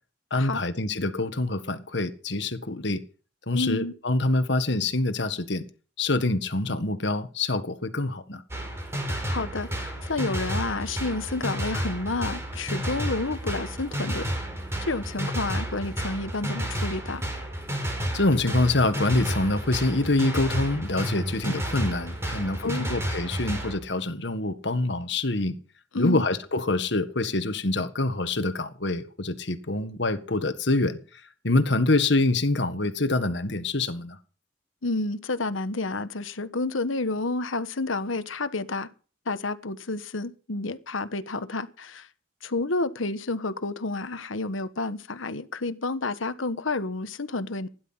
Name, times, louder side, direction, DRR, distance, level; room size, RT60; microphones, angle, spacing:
voice 1, 0.3-3.0 3.5-5.6 6.0-8.4 18.1-25.6 25.9-31.0 31.4-34.2, left 2 dB, 60° left, 1.7 m, -25 dB
voice 2, 3.5-3.9 9.1-14.3 14.8-17.3 22.6-22.9 25.9-26.2 34.8-38.9 39.3-42.1 42.4-47.7, left 3 dB, 90° left, 1.3 m, -30 dB
sound 1, 8.5-23.8, right 1 dB, 15° right, 4.7 m, -31 dB
17.0 x 11.0 x 5.7 m
head